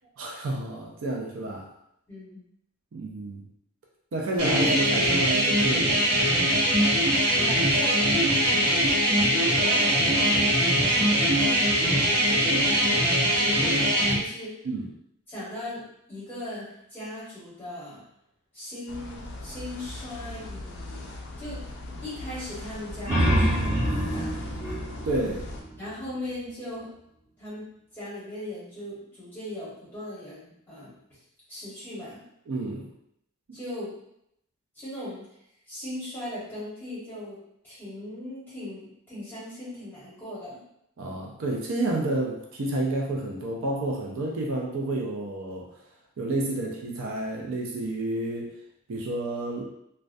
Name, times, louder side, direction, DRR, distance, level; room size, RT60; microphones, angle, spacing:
voice 1, 0.2-1.7 2.9-3.4 4.1-6.1 14.6-14.9 25.0-25.4 32.5-32.9 33.5-33.6 41.0-45.7 46.2-48.5 48.9-49.6, right 2 dB, 60° right, -2 dB, 0.4 m, -30 dB
voice 2, 2.1-2.4 7.4-8.0 9.0-14.6 15.3-18.0 18.5-21.1 21.4-23.8 24.1-24.8 25.8-26.9 27.4-30.9 31.5-32.2 33.5-33.9 34.7-35.3 35.7-37.4 37.6-40.6, left 1 dB, 10° left, -11 dB, 1.1 m, -39 dB
sound 1, 4.4-14.2, right 1 dB, 80° right, 0.9 m, -22 dB
sound 2, 18.9-25.6, left 2 dB, 50° left, 0.3 m, -39 dB
sound 3, 22.8-26.2, right 1 dB, 10° right, 0.8 m, -26 dB
2.2 x 2.1 x 2.5 m, 0.76 s
head